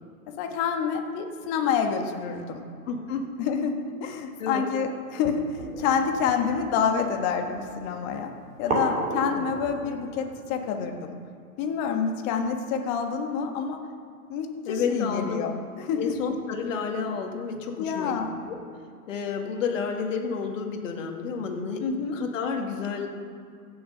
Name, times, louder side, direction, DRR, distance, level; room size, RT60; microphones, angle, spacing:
voice 1, 0.3-2.6 3.4-3.7 4.0-8.3 8.6-11.2 11.6-13.8 14.3-16.1 17.8-18.3 21.8-22.2, left 6 dB, 30° left, 4 dB, 1.5 m, -28 dB
voice 2, 2.9-3.3 4.4-4.7 14.6-15.4 15.9-18.2 18.5-18.6 19.1-21.8 22.1-23.1, left 5 dB, 55° left, 2 dB, 2.2 m, -30 dB
sound 1, 5.6-10.6, right 1 dB, 15° right, 2.5 m, -34 dB
16.0 x 7.1 x 5.6 m, 2.4 s
hypercardioid pair, 135°, 45 cm